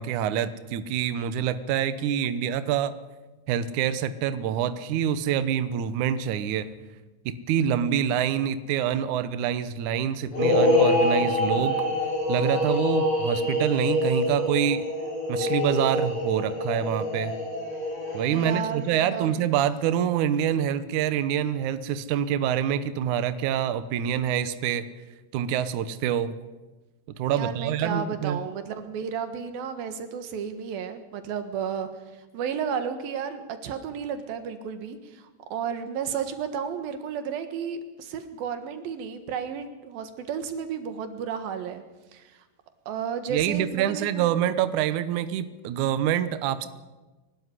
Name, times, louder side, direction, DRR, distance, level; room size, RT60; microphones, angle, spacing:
voice 1, 0.0-2.9 3.5-6.7 7.3-11.9 12.3-14.8 15.3-17.3 18.1-24.8 25.3-26.3 27.2-28.4 43.3-46.7, right 9 dB, 80° right, 12 dB, 1.7 m, -26 dB
sound 1, 10.3-18.9, left 1 dB, 85° left, 9.3 m, -25 dB
voice 2, 18.3-19.3 27.3-31.9 32.3-41.8 42.1-42.4 42.9-44.3, right 7 dB, 65° right, 8 dB, 3.1 m, -33 dB
23.5 x 12.5 x 9.8 m, 1.2 s
omnidirectional pair, 4.9 m